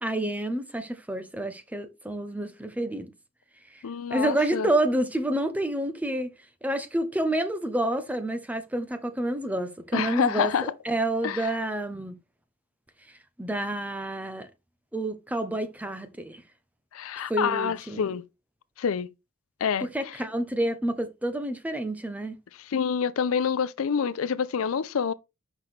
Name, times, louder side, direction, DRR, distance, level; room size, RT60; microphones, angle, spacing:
voice 1, 0.0-3.1 3.7-3.8 4.1-6.3 6.6-12.1 13.4-14.5 14.9-16.4 17.3-18.1 19.8-22.4, right 1 dB, 5° right, 0.7 m, -29 dB
voice 2, 3.8-4.7 9.9-10.7 11.2-11.5 16.9-18.2 18.8-19.1 19.6-19.9 22.6-25.1, left 6 dB, 70° left, 0.5 m, -27 dB
5.9 x 5.7 x 3.2 m
head